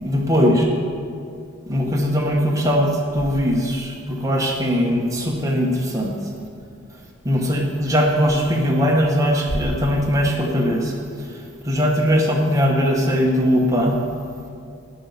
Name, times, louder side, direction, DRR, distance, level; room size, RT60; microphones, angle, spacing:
voice 1, 0.0-0.6 1.7-6.2 7.2-10.9 11.6-14.0, equal, 15° right, -1 dB, 1.2 m, -20 dB
10.0 x 5.5 x 8.3 m, 2.4 s
head